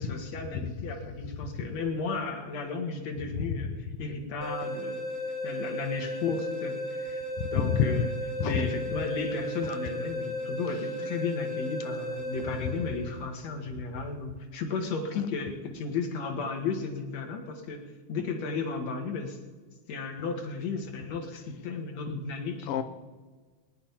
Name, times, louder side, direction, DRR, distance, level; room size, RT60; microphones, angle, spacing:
voice 1, 0.0-5.1 5.4-8.1 8.4-19.4 19.9-22.7, left 4 dB, 60° left, 4 dB, 2.8 m, -34 dB
sound 1, 4.4-13.4, left 1 dB, 25° left, 1.5 m, -35 dB
voice 2, 7.6-8.1 8.4-8.7 22.7-22.8, left 7 dB, 80° left, 9 dB, 1.3 m, -26 dB
21.0 x 10.0 x 5.7 m, 1.4 s
omnidirectional pair, 3.6 m